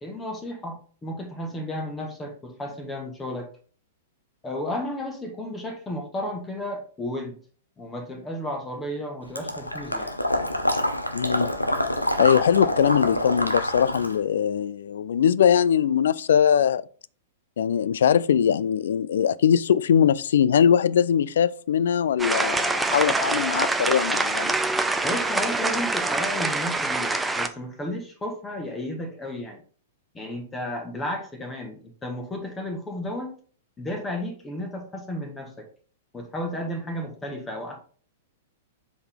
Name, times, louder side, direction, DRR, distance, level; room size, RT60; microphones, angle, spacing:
voice 1, 0.0-3.5 4.4-7.4 7.8-10.1 25.0-29.6 30.1-33.3 33.8-35.7 36.1-37.8, left 1 dB, 15° left, 1.5 m, -33 dB
Water / Liquid, 9.4-14.2, left 1 dB, 85° left, 0.9 m, -26 dB
voice 2, 11.1-11.5 12.2-16.8 17.6-24.5, left 8 dB, 60° left, 0.3 m, -21 dB
sound 1, 22.2-27.5, right 2 dB, 5° right, 0.6 m, -25 dB
7.7 x 4.1 x 3.7 m
figure-of-eight pair, 100°, 0 cm